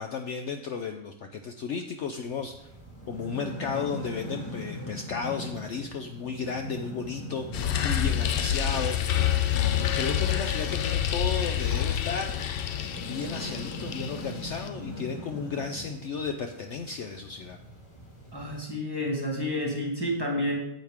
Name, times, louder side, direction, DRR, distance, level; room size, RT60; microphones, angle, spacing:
voice 1, 0.0-2.5 3.1-12.4 13.0-17.6, left 5 dB, 60° left, 5 dB, 0.8 m, -34 dB
sound 1, 2.3-18.6, left 1 dB, 20° left, 2.0 m, -41 dB
sound 2, 7.5-14.7, left 10 dB, 85° left, 0.5 m, -28 dB
voice 2, 18.3-20.6, equal, 15° right, 0 dB, 1.5 m, -29 dB
9.2 x 7.9 x 3.6 m, 0.82 s
omnidirectional pair, 1.6 m